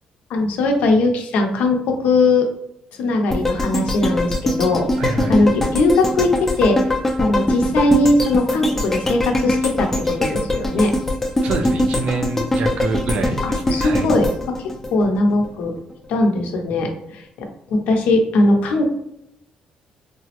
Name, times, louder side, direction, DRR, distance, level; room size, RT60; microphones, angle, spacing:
voice 1, 0.3-2.5 3.0-4.9 5.3-6.9 7.2-9.9 10.2-10.9 13.7-15.7 16.1-18.9, left 2 dB, 85° left, 3 dB, 0.5 m, -19 dB
sound 1, 3.3-15.5 15.9-16.0, left 1 dB, 10° left, 0.3 m, -22 dB
voice 2, 5.0-5.4 11.4-14.1, right 3 dB, 60° right, 6 dB, 0.4 m, -26 dB
3.4 x 2.0 x 2.8 m, 0.78 s
cardioid pair, 160°, 2 cm